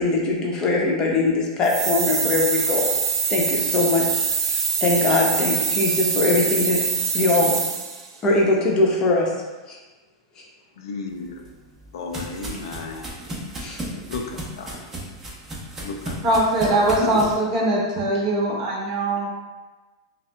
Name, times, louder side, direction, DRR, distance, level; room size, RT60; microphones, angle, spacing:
voice 1, 0.0-2.9 3.3-6.8 7.1-7.6 8.2-9.3 9.7-9.8 13.6-13.8, left 3 dB, 30° left, -2 dB, 0.8 m, -21 dB
sound 1, 1.6-8.1, right 6 dB, 75° right, 0.5 m, -24 dB
voice 2, 10.8-11.4 11.9-13.1 14.1-14.8 15.8-16.2 17.0-17.2, left 4 dB, 75° left, 3 dB, 0.4 m, -33 dB
sound 2, 11.2-17.3, right 1 dB, 15° right, 0.8 m, -35 dB
voice 3, 16.2-19.3, right 1 dB, 35° right, -4 dB, 1.1 m, -21 dB
5.5 x 2.1 x 2.2 m, 1.2 s
hypercardioid pair, 120°, 2 cm